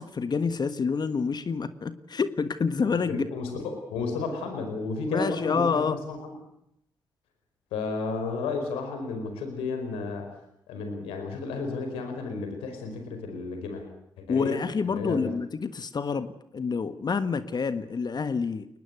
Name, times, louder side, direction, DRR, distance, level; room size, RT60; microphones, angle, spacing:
voice 1, 0.0-3.2 5.1-6.0 14.3-18.7, left 5 dB, 45° left, 12 dB, 1.5 m, -28 dB
voice 2, 2.9-6.2 7.7-10.3 10.7-13.8 14.2-15.3, left 3 dB, 85° left, 5 dB, 4.8 m, -32 dB
23.0 x 19.5 x 8.1 m, 0.78 s
hypercardioid pair, 45°, 9 cm